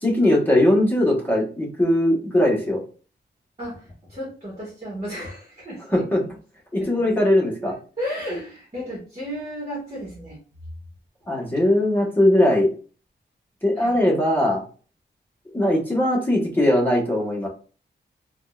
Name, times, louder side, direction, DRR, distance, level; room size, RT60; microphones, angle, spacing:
voice 1, 0.0-2.8 5.9-6.2 6.7-7.8 11.3-12.7 13.6-14.6 15.5-17.5, left 1 dB, 10° left, -3 dB, 1.1 m, -20 dB
voice 2, 3.6-6.3 6.8-7.1 7.6-10.4 13.8-14.0, equal, 35° right, -5 dB, 1.3 m, -34 dB
3.6 x 2.3 x 2.3 m, 0.38 s
wide cardioid pair, 140°, 18 cm